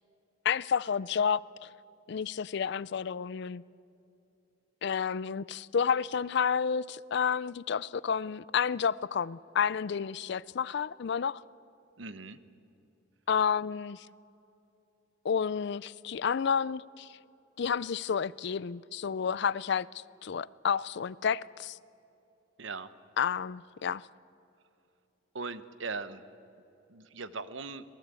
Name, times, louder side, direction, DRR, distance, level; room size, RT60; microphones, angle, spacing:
voice 1, 0.4-1.7 2.1-3.6 4.8-11.4 13.3-14.1 15.2-17.2 17.6-19.9 20.2-21.8 23.2-24.1, left 7 dB, 60° left, 0.4 m, -30 dB
voice 2, 12.0-12.4 22.6-22.9 25.3-26.2 26.9-27.8, right 4 dB, 75° right, 1.0 m, -39 dB
26.0 x 18.5 x 8.3 m
head